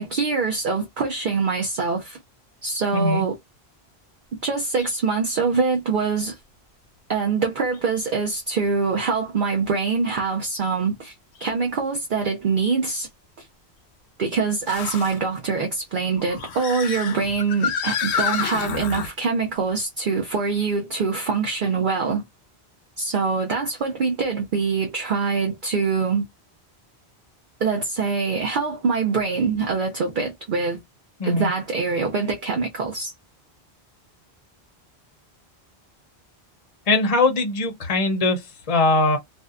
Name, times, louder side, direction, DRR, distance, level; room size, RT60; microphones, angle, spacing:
voice 1, 0.0-2.2 2.6-3.4 4.4-6.4 7.1-11.1 11.4-13.1 13.4-13.5 14.2-22.2 23.0-26.2 27.6-30.8 31.2-33.1, right 4 dB, 55° right, 0.7 m, -24 dB
voice 2, 2.9-3.2 31.2-31.5 36.9-39.2, left 2 dB, 40° left, 0.7 m, -21 dB
sound 1, 4.7-4.9 5.6-5.7 7.7-7.8 11.4-11.5 14.6-15.2 16.1-19.1, left 7 dB, 90° left, 0.9 m, -28 dB
2.6 x 2.1 x 2.3 m
omnidirectional pair, 1.1 m